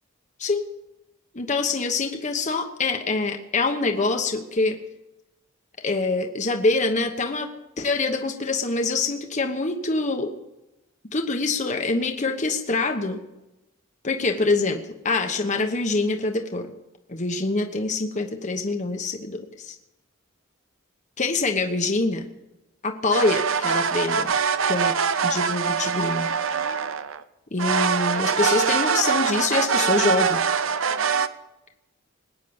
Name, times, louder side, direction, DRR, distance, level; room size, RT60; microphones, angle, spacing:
voice 1, 1.3-4.8 5.8-10.3 11.1-13.2 14.0-16.7 17.1-19.8 21.2-22.3 22.8-24.3 24.7-25.0 25.2-26.3 27.5-30.4, left 3 dB, 35° left, 4 dB, 1.1 m, -25 dB
sound 1, 23.1-27.2 27.6-31.3, right 6 dB, 75° right, 0.7 m, -23 dB
20.0 x 9.3 x 7.1 m, 0.94 s
head